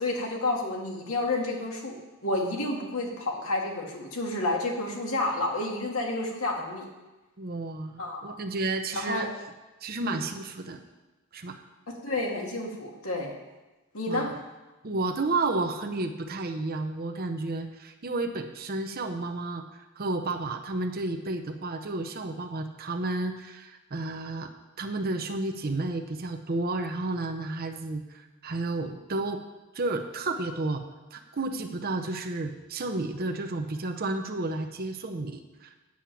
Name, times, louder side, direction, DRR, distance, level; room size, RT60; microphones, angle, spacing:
voice 1, 0.0-6.9 8.0-8.3 8.9-9.3 10.0-10.3 11.9-13.3 13.9-14.3, left 2 dB, 85° left, -1 dB, 2.1 m, -30 dB
voice 2, 7.4-9.3 9.8-10.8 11.3-11.6 14.1-14.3 14.8-19.6 20.0-24.5 24.8-29.4 29.7-30.8 31.1-35.7, right 2 dB, 45° right, 5 dB, 0.8 m, -31 dB
8.7 x 7.1 x 7.5 m, 1.1 s
head